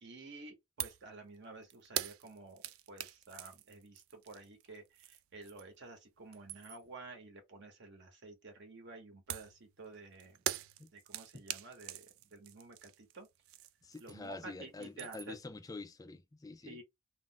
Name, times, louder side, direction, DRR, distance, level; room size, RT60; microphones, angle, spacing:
voice 1, 0.0-2.6 2.9-10.4 10.9-13.3 14.0-15.4 16.6-16.8, right 3 dB, 55° right, 0.8 m, -51 dB
sound 1, 0.8-1.1 1.4-5.8 6.2-6.9 9.3-14.4 14.7-15.4, right 13 dB, 75° right, 0.3 m, -43 dB
voice 2, 13.8-16.8, left 3 dB, 15° left, 0.3 m, -47 dB
2.3 x 2.0 x 3.7 m
head